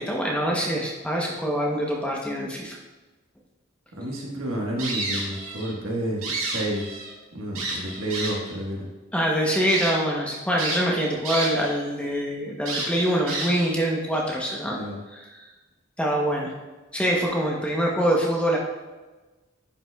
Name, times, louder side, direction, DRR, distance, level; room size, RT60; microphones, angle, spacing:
voice 1, 0.0-2.8 9.1-14.8 15.1-15.5 16.0-16.5 16.9-18.6, equal, 5° left, -2 dB, 0.7 m, -25 dB
voice 2, 4.0-8.9 14.6-15.0, right 1 dB, 70° right, -1 dB, 1.3 m, -30 dB
sound 1, 4.8-5.7 6.1-7.1 7.5-8.5 9.1-9.2 9.7-9.9 10.6-11.7 12.0-12.1 12.6-13.7, right 3 dB, 90° right, 1.7 m, -30 dB
10.5 x 4.9 x 2.3 m, 1.2 s
head